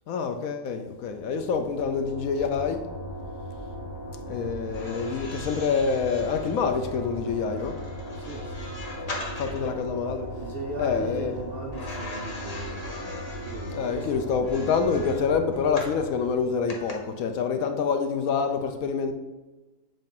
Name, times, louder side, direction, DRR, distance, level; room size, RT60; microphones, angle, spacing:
voice 1, 0.1-2.9 4.3-7.8 9.4-10.3 10.8-11.4 13.7-19.1, left 5 dB, 70° left, 0.9 m, -27 dB
sound 1, 1.1-16.9, equal, 85° left, 1.6 m, -38 dB
sound 2, 4.6-9.8 11.7-16.0 16.7-16.9, left 2 dB, 35° left, 0.6 m, -41 dB
voice 2, 8.1-8.8 10.4-14.2, right 2 dB, 80° right, 0.5 m, -38 dB
7.5 x 2.6 x 5.3 m
omnidirectional pair, 1.8 m